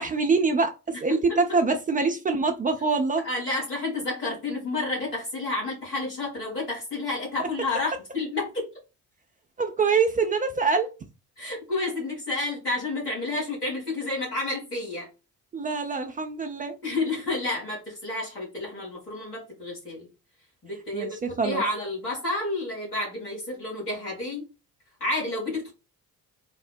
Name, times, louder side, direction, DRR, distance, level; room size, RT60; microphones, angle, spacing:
voice 1, 0.0-3.2 7.4-7.5 9.6-10.9 15.5-16.7 20.9-21.1 21.4-21.6, right 4 dB, 20° right, 0.3 m, -24 dB
voice 2, 1.1-1.6 3.2-8.7 11.4-15.1 16.8-20.1 20.6-24.5 25.0-25.7, left 2 dB, 85° left, 1.6 m, -30 dB
3.5 x 2.0 x 2.3 m
figure-of-eight pair, 45°, 46 cm